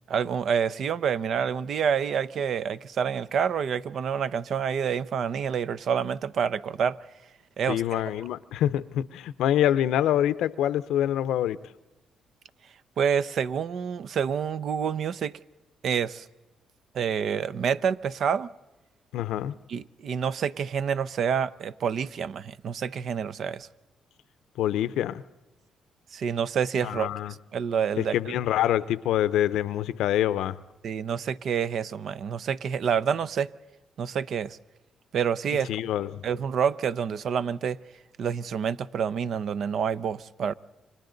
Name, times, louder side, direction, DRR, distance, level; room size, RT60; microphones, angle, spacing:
voice 1, 0.1-7.0 7.6-8.0 13.0-15.4 15.8-16.3 16.9-18.5 19.7-23.7 26.1-27.1 27.5-28.3 30.8-33.5 34.0-34.6 35.1-35.7 36.2-37.8 38.2-40.5, right 7 dB, 65° right, 0.6 m, -28 dB
voice 2, 7.7-11.6 19.1-19.5 24.6-25.2 26.8-27.3 28.0-30.6 35.7-36.2, left 11 dB, 85° left, 0.6 m, -26 dB
29.5 x 24.5 x 3.9 m
cardioid pair, 90°, 0 cm